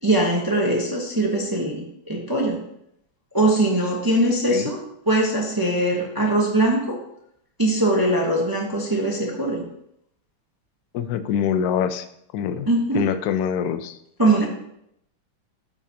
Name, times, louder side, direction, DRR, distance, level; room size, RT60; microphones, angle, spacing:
voice 1, 0.0-2.6 3.3-4.8 5.1-7.0 7.6-9.6 12.7-13.0 14.2-14.5, right 1 dB, 20° right, -1 dB, 0.6 m, -21 dB
voice 2, 10.9-12.1 12.3-12.7 12.9-14.0, left 8 dB, 80° left, 10 dB, 0.8 m, -24 dB
12.5 x 5.9 x 2.8 m, 0.76 s
omnidirectional pair, 2.3 m